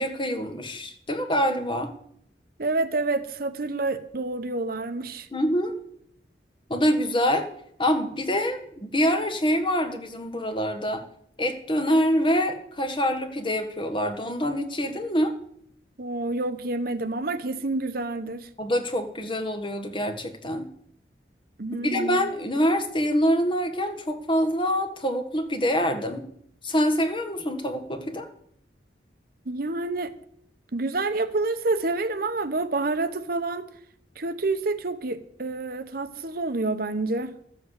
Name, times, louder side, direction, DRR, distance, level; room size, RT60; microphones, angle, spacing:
voice 1, 0.0-1.9 5.3-5.7 6.7-7.5 7.8-11.0 11.4-15.3 18.6-20.7 21.8-26.3 26.6-28.3, equal, 30° left, 1.5 m, -25 dB
voice 2, 2.6-5.3 16.0-18.5 21.6-22.2 29.5-30.1 30.7-33.7 34.2-37.3, right 2 dB, 55° right, 0.9 m, -28 dB
13.0 x 7.7 x 8.1 m
head